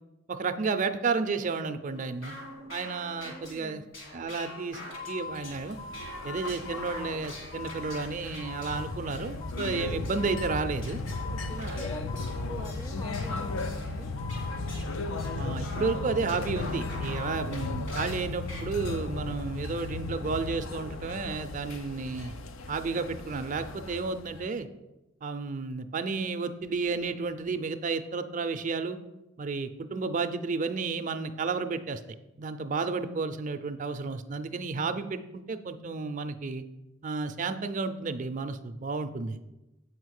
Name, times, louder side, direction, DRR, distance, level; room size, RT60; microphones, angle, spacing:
voice 1, 0.3-2.4 2.7-3.8 4.1-4.8 5.1-5.8 6.2-11.0 11.6-11.8 15.3-22.3 22.7-24.7 25.2-29.0 29.4-32.0 32.4-36.6 37.0-39.4, right 4 dB, 40° right, 9 dB, 0.4 m, -32 dB
sound 1, 1.9-10.5 10.8-18.6, left 2 dB, 65° left, 2.3 m, -45 dB
voice 2, 3.2-3.9 11.3-12.1 12.5-14.1, left 1 dB, 15° left, 8 dB, 0.5 m, -44 dB
sound 2, 4.5-12.8 13.3-15.0 15.2-17.9, left 5 dB, 45° left, 0.7 m, -46 dB
sound 3, 5.3-24.5, left 3 dB, 85° left, 0.6 m, -36 dB
7.6 x 5.1 x 6.4 m, 1.0 s
head